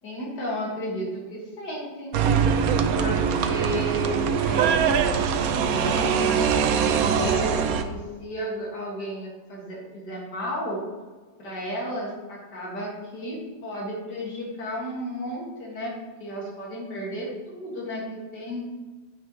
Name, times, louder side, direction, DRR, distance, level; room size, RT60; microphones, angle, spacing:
voice 1, 0.0-2.2 2.7-10.8 11.4-18.7, equal, 65° left, -3 dB, 2.8 m, -33 dB
sound 1, 2.1-7.8, right 7 dB, 65° right, 1.0 m, -22 dB
9.3 x 9.1 x 3.2 m, 1.3 s
omnidirectional pair, 1.9 m